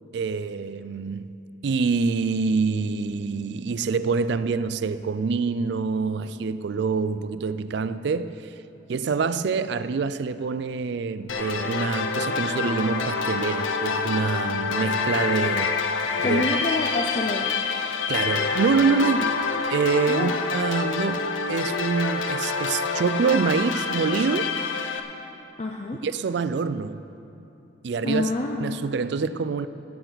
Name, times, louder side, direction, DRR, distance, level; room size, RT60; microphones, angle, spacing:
voice 1, 0.1-8.4 8.9-15.8 16.2-16.6 18.1-19.3 19.7-24.6 26.0-27.0 27.8-28.3 28.6-29.7, right 5 dB, 60° right, 0.3 m, -26 dB
sound 1, 11.3-25.0, left 5 dB, 75° left, 0.7 m, -27 dB
voice 2, 16.2-17.5 20.1-20.3 25.6-26.0 28.0-28.8, left 2 dB, 35° left, 0.5 m, -27 dB
17.0 x 8.9 x 4.0 m
head